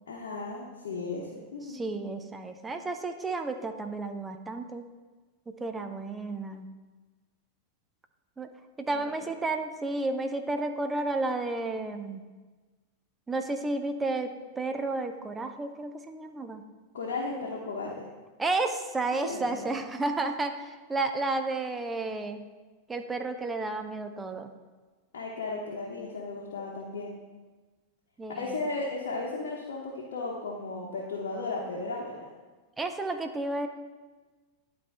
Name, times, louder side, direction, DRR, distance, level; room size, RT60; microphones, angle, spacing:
voice 1, 0.1-1.8 8.9-9.1 16.9-18.1 19.2-19.8 25.1-27.2 28.3-32.3, left 3 dB, 60° left, -3 dB, 1.0 m, -35 dB
voice 2, 1.7-4.9 5.5-6.7 8.4-8.5 8.9-12.2 13.3-16.6 18.4-22.4 22.9-24.5 28.2-28.6 32.8-33.7, right 2 dB, 15° right, 7 dB, 0.6 m, -32 dB
10.5 x 4.3 x 3.5 m, 1.3 s
figure-of-eight pair, 90°, 0 cm